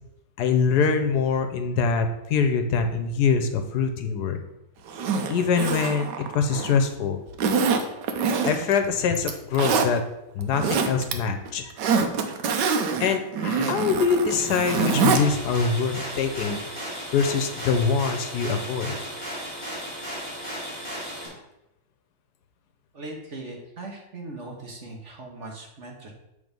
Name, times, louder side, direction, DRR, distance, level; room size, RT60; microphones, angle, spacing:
voice 1, 0.4-4.4 5.3-6.1 6.3-7.2 8.4-10.0 10.3-12.0 13.0-16.6 17.1-18.9, left 5 dB, 70° left, 7 dB, 1.2 m, -24 dB
Zipper (clothing), 4.9-6.8 7.4-8.8 9.2-9.9 10.4-11.1 11.5-15.2 15.6-15.7, right 5 dB, 80° right, 1.3 m, -25 dB
sound 1, 14.3-21.3, equal, 10° right, 2.7 m, -35 dB
voice 2, 22.9-26.1, right 2 dB, 50° right, 1 dB, 1.3 m, -39 dB
7.7 x 3.5 x 5.2 m, 0.91 s
omnidirectional pair, 1.8 m